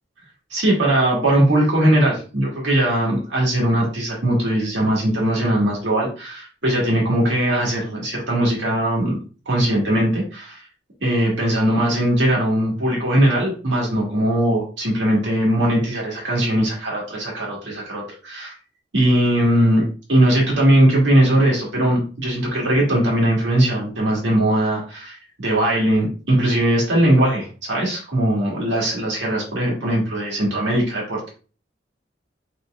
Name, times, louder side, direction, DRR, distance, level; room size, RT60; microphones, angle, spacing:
voice 1, 0.5-9.2 9.5-10.7 11.0-18.5 18.9-19.8 20.1-31.3, right 1 dB, 80° right, -3 dB, 1.8 m, -20 dB
4.3 x 4.2 x 2.4 m, 0.37 s
head